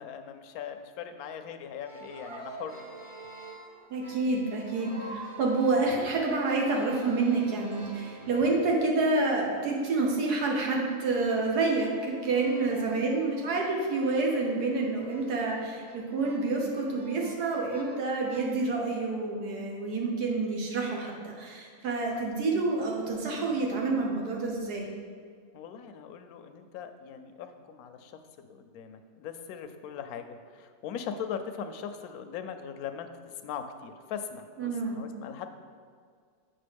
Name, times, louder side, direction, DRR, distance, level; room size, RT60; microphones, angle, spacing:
voice 1, 0.0-2.7 8.2-8.5 12.7-12.9 22.0-22.4 25.5-35.5, left 7 dB, 75° left, 8 dB, 1.0 m, -40 dB
sound 1, 1.8-8.7 9.0-18.8, right 2 dB, 30° right, 0.6 m, -48 dB
voice 2, 3.9-24.9 34.6-35.0, right 3 dB, 85° right, -1 dB, 1.6 m, -28 dB
7.4 x 5.9 x 3.4 m, 2.1 s
omnidirectional pair, 1.6 m